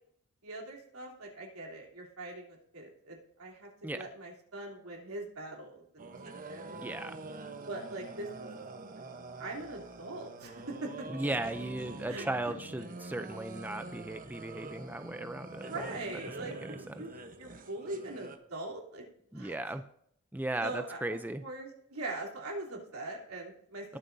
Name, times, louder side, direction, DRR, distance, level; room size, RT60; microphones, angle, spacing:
voice 1, 0.4-6.8 7.7-8.6 8.9-9.0 9.4-11.1 12.1-12.2 15.7-17.1 17.4-19.0 19.3-19.6 20.6-21.0 21.4-24.0, right 2 dB, 75° right, -1 dB, 3.3 m, -42 dB
sound 1, 6.0-18.4, right 3 dB, 40° right, 1.0 m, -46 dB
voice 2, 6.8-7.2 11.1-15.7 16.4-17.0 19.3-19.8 20.3-21.4 23.9-24.0, right 1 dB, 10° right, 9 dB, 0.4 m, -37 dB
20.0 x 7.6 x 2.7 m, 0.69 s
head